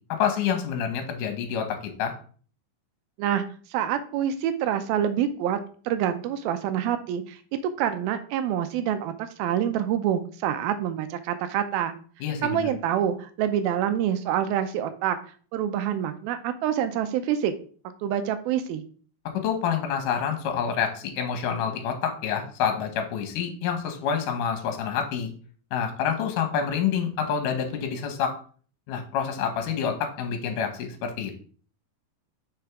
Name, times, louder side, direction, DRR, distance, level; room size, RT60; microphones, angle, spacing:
voice 1, 0.1-2.1 12.2-12.7 19.4-25.3 25.7-28.3 28.9-31.4, left 7 dB, 70° left, 5 dB, 2.5 m, -27 dB
voice 2, 3.7-5.6 5.9-7.4 7.8-9.1 9.4-12.0 12.4-15.2 15.5-17.5 18.0-18.8, right 10 dB, 85° right, 10 dB, 2.4 m, -26 dB
6.3 x 5.9 x 3.6 m, 0.43 s
omnidirectional pair, 4.3 m